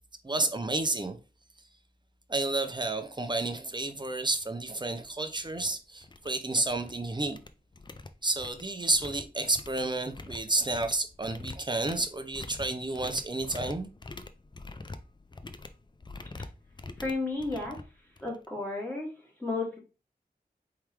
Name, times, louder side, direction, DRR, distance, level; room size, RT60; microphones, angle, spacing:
voice 1, 0.2-1.2 2.3-7.4 8.2-13.9, right 2 dB, 25° right, 0.7 m, -30 dB
sound 1, 4.3-4.4 4.9-5.1 5.4-5.7 6.0-6.9 7.2-18.5, left 3 dB, 25° left, 0.4 m, -45 dB
voice 2, 17.0-17.8 18.2-19.1 19.4-19.8, left 3 dB, 10° left, 2.3 m, -32 dB
4.6 x 3.6 x 3.1 m
wide cardioid pair, 65°, 17 cm